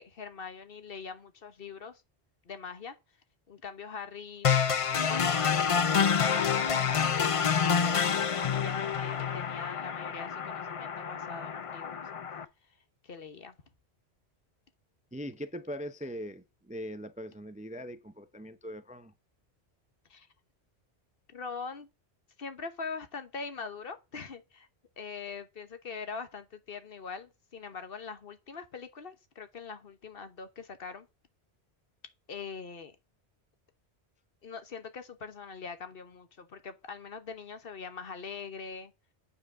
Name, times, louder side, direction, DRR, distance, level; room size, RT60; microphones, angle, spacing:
voice 1, 0.0-2.0 2.4-3.0 3.5-4.5 5.1-12.0 13.0-13.5 20.1-20.3 21.3-21.9 22.4-24.7 25.0-31.1 32.3-33.0 34.4-38.9, left 5 dB, 60° left, 1.2 m, -42 dB
sound 1, 4.4-12.4, left 7 dB, 40° left, 0.5 m, -28 dB
voice 2, 15.1-19.1, equal, 10° right, 0.5 m, -41 dB
8.5 x 4.9 x 6.4 m
omnidirectional pair, 1.1 m